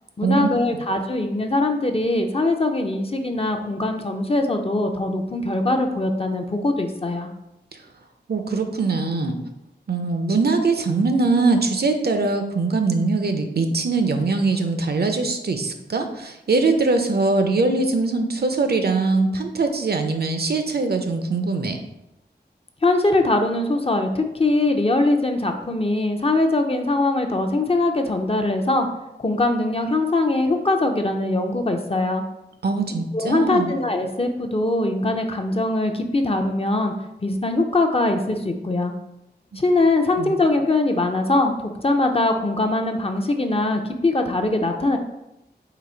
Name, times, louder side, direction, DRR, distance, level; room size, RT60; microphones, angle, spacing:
voice 1, 0.2-7.3 22.8-28.9 29.2-32.2 33.1-36.9 37.2-38.9 39.6-45.0, left 2 dB, 30° left, 4 dB, 0.5 m, -22 dB
voice 2, 8.3-9.4 9.9-21.8 32.6-33.7 39.5-39.6 40.2-40.3, right 3 dB, 60° right, 6 dB, 0.5 m, -22 dB
4.0 x 2.7 x 4.3 m, 0.89 s
wide cardioid pair, 55°, 18 cm